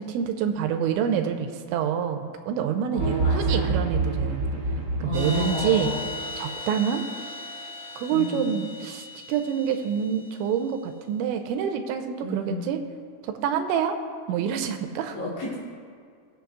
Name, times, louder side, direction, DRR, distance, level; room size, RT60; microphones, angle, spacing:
voice 1, 0.0-4.5 5.0-5.9 6.4-7.0 8.0-12.8 13.3-14.0 14.3-15.2, right 8 dB, 90° right, 5 dB, 3.0 m, -27 dB
voice 2, 2.9-3.7 5.0-6.0 8.1-8.5 12.2-12.7 15.1-15.6, left 3 dB, 90° left, -7 dB, 5.3 m, -32 dB
sound 1, 3.0-6.4, right 3 dB, 40° right, 3.1 m, -27 dB
sound 2, 5.1-10.7, left 1 dB, 25° right, 0.9 m, -37 dB
22.0 x 7.6 x 2.3 m, 2.1 s
omnidirectional pair, 5.2 m